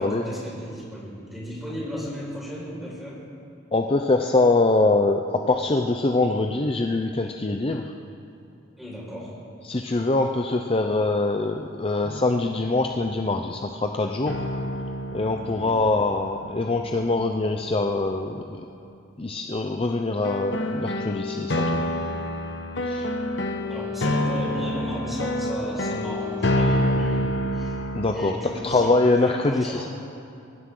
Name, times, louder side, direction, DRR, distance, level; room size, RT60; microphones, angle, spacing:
voice 1, 0.0-3.2 8.8-9.4 15.5-15.8 23.7-27.8 28.1-29.9, equal, ahead, -6 dB, 5.2 m, -35 dB
voice 2, 3.7-7.9 9.6-14.4 15.1-18.6 19.2-21.9 22.8-23.1 27.9-28.3 28.6-29.9, left 2 dB, 30° left, 3 dB, 0.6 m, -23 dB
sound 1, 10.0-10.1 12.0-13.0 14.3-17.5 20.2-28.1, left 1 dB, 65° left, 1.1 m, -28 dB
24.5 x 15.5 x 3.8 m, 2.6 s
head